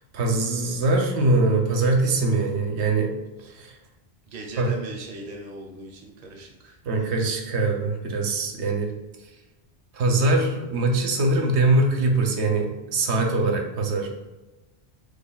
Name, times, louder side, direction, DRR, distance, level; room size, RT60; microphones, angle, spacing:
voice 1, 0.1-3.1 3.5-3.8 4.6-4.7 6.8-8.9 9.9-14.1, right 2 dB, 85° right, 2 dB, 0.9 m, -22 dB
voice 2, 4.3-7.3, right 3 dB, 45° right, 0 dB, 0.6 m, -39 dB
3.1 x 2.2 x 3.9 m, 1.0 s
omnidirectional pair, 1.1 m